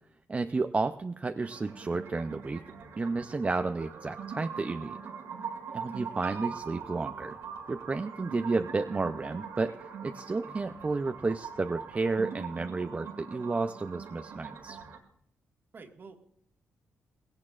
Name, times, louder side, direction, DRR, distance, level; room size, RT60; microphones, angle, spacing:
voice 1, 0.3-2.6 3.0-5.0 5.7-7.4 7.7-9.8 10.0-14.8, right 3 dB, 30° right, 7 dB, 0.5 m, -31 dB
sound 1, 1.4-15.0, right 6 dB, 85° right, 2.3 m, -42 dB
voice 2, 5.7-6.2 15.7-16.2, right 4 dB, 50° right, 4 dB, 1.7 m, -50 dB
Piano, 6.2-8.2 8.8-9.5 9.9-10.0 10.2-10.3, right 6 dB, 65° right, 1.2 m, -47 dB
18.5 x 17.0 x 2.5 m, 0.72 s
cardioid pair, 70°, 5 cm